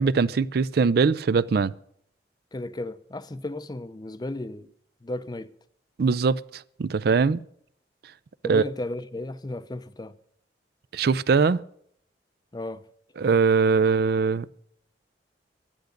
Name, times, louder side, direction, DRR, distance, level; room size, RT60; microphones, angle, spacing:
voice 1, 0.0-1.7 6.0-7.4 8.4-8.6 10.9-11.6 13.2-14.5, right 5 dB, 60° right, 0.4 m, -22 dB
voice 2, 2.5-4.7 5.0-5.5 8.4-10.1 12.5-12.8, left 2 dB, 25° left, 0.5 m, -34 dB
11.5 x 10.5 x 6.5 m
head